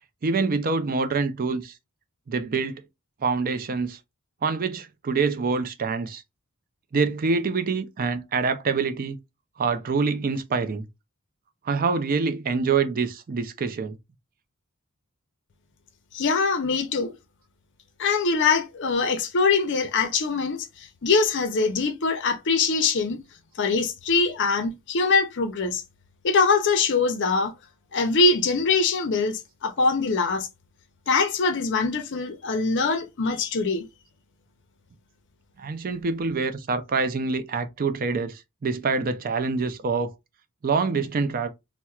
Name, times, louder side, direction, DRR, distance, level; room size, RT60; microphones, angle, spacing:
voice 1, 0.2-1.8 2.3-2.8 3.2-4.0 4.4-6.2 6.9-9.2 9.6-10.9 11.6-14.0 35.6-40.1 40.6-41.5, right 4 dB, 40° right, 0.4 m, -26 dB
voice 2, 16.1-17.1 18.0-23.2 23.6-25.8 26.2-27.5 27.9-30.5 31.1-33.9, left 4 dB, 55° left, 0.6 m, -23 dB
4.3 x 2.1 x 2.3 m
head